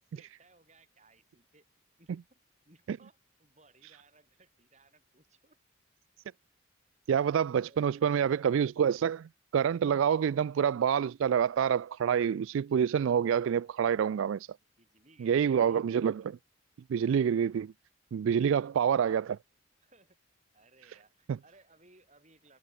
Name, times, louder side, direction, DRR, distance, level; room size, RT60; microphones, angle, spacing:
voice 1, 0.1-1.7 2.0-5.6 14.8-15.8 19.8-20.2 20.5-22.6, right 2 dB, 35° right, 6.6 m, -63 dB
voice 2, 7.1-14.5 15.2-16.4 16.9-17.7 18.1-19.4 21.3-21.4, right 8 dB, 70° right, 0.3 m, -27 dB
head